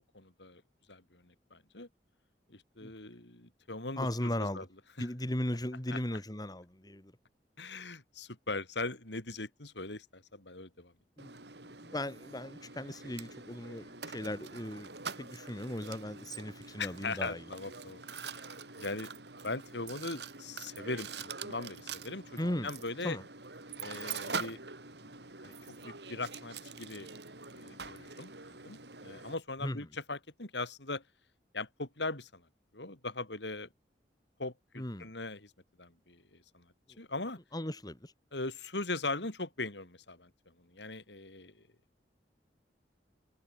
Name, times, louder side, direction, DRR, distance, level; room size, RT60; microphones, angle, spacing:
voice 1, 0.1-0.6 0.9-1.9 2.5-4.6 5.0-5.1 5.9-6.0 7.6-10.9 16.8-19.1 19.4-23.2 23.8-24.6 25.0-25.1 25.4-27.1 27.5-28.3 28.6-31.0 31.5-32.5 32.7-33.7 34.4-35.5 35.8-37.4 38.3-41.6, left 3 dB, 85° left, 4.5 m, -40 dB
voice 2, 4.0-4.7 5.0-7.1 11.2-11.4 11.6-14.9 15.2-17.4 22.4-22.7 23.0-23.2 29.6-29.8 34.8-35.1 36.9-37.0 37.5-38.1, left 1 dB, 20° left, 2.1 m, -37 dB
Mechanisms, 11.2-29.3, right 5 dB, 75° right, 6.5 m, -45 dB
head